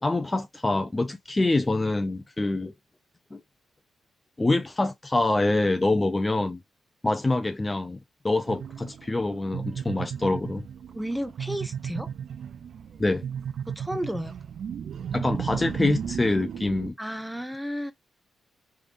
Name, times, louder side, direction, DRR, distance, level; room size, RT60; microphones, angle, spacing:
voice 1, 0.0-2.7 3.3-3.4 4.4-6.6 7.0-8.0 8.2-10.7 13.0-13.2 15.1-16.9, left 2 dB, 25° left, 0.6 m, -25 dB
sound 1, 8.5-16.9, right 8 dB, 70° right, 0.4 m, -35 dB
voice 2, 10.9-12.1 13.8-14.3 17.0-17.9, equal, ahead, 0.8 m, -32 dB
3.4 x 3.4 x 2.4 m
supercardioid pair, 55°, 0 cm